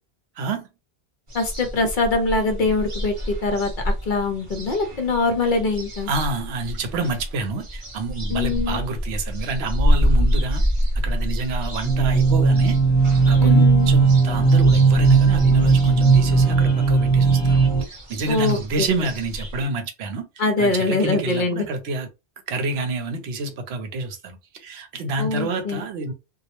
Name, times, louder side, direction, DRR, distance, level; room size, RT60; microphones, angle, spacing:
voice 1, 0.4-0.7 6.1-10.6 10.9-12.8 13.3-20.3 20.6-22.1 22.5-26.1, right 2 dB, 75° right, 0.8 m, -28 dB
voice 2, 1.3-6.1 8.3-8.8 10.2-10.3 13.4-13.9 18.3-18.6 20.4-21.6 25.2-25.8, left 3 dB, 55° left, 0.7 m, -23 dB
sound 1, 1.3-19.6, equal, 30° right, 0.8 m, -28 dB
sound 2, 11.8-17.8, right 5 dB, 30° left, 1.0 m, -16 dB
2.2 x 2.0 x 2.9 m
omnidirectional pair, 1.1 m